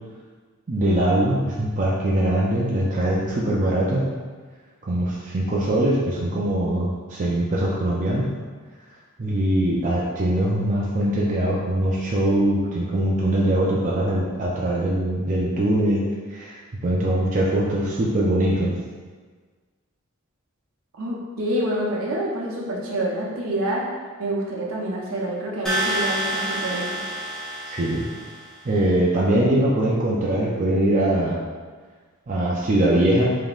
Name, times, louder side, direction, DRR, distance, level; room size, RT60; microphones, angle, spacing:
voice 1, 0.7-4.1 4.9-8.3 9.2-16.0 16.3-18.7 27.7-28.1 28.6-31.4 32.3-33.3, right 1 dB, 35° right, -5 dB, 0.4 m, -22 dB
voice 2, 20.9-23.9 24.2-27.0, right 1 dB, 75° right, -3 dB, 0.8 m, -27 dB
sound 1, 25.7-28.6, right 1 dB, 5° left, 0.7 m, -28 dB
3.7 x 3.6 x 2.4 m, 1.5 s
head